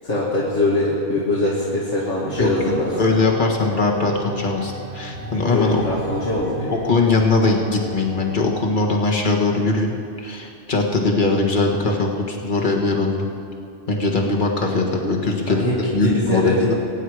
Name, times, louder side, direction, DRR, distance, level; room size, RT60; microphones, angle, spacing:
voice 1, 0.0-2.9 5.5-6.7 15.5-16.7, left 1 dB, 70° left, -7 dB, 2.4 m, -22 dB
sound 1, 2.3-8.5, right 1 dB, 75° right, 1.9 m, -35 dB
voice 2, 2.4-5.8 6.8-13.3 13.9-15.6 15.9-16.7, left 3 dB, 40° left, 1 dB, 1.7 m, -21 dB
22.0 x 9.2 x 4.9 m, 2.6 s
omnidirectional pair, 1.3 m